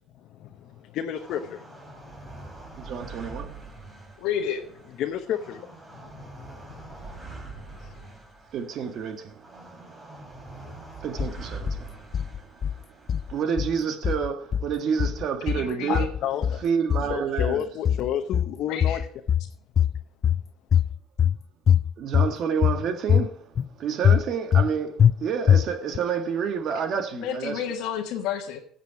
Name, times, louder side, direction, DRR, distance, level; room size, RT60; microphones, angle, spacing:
voice 1, 0.2-2.1 2.4-2.9 5.0-5.6 5.9-8.1 15.9-16.6 17.0-19.0, left 10 dB, 70° left, 1.0 m, -33 dB
sound 1, 1.1-13.5, right 3 dB, 25° right, 3.1 m, -44 dB
voice 2, 2.8-3.5 8.5-9.3 11.0-11.8 13.3-16.1 16.6-17.7 22.0-23.3 23.8-27.6, right 7 dB, 60° right, 1.6 m, -28 dB
voice 3, 4.2-4.6 15.4-16.1 18.7-19.0 27.1-28.6, left 9 dB, 85° left, 1.4 m, -30 dB
sound 2, 11.2-11.8 12.1-12.8 13.1-13.8 14.0-14.7 15.0-15.7 15.9-16.6 16.9-17.6 17.9-18.5 18.8-19.5 19.8-20.4 20.7-21.4 21.7-22.3 22.6-23.3 23.6-23.7 24.0-24.7 25.0-25.1 25.5-26.0, left 9 dB, 45° left, 0.4 m, -22 dB
15.5 x 7.5 x 4.8 m
cardioid pair, 110°, 0 cm